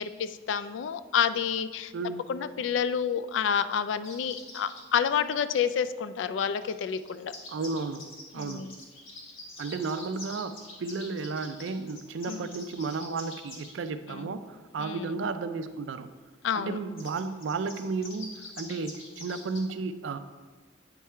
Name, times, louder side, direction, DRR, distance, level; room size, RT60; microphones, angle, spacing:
voice 1, 0.0-1.9 2.3-7.3 8.3-8.8 12.3-12.5 14.1-14.3 14.8-15.1 16.4-16.8, left 7 dB, 65° left, 13 dB, 0.3 m, -29 dB
voice 2, 1.9-2.3 7.5-8.1 8.3-8.7 9.6-16.1 16.5-20.2, right 4 dB, 70° right, 11 dB, 0.4 m, -33 dB
sound 1, 4.0-4.9 6.6-13.7 17.0-19.6, left 2 dB, 85° left, 1.3 m, -46 dB
8.3 x 3.6 x 4.3 m, 1.4 s
head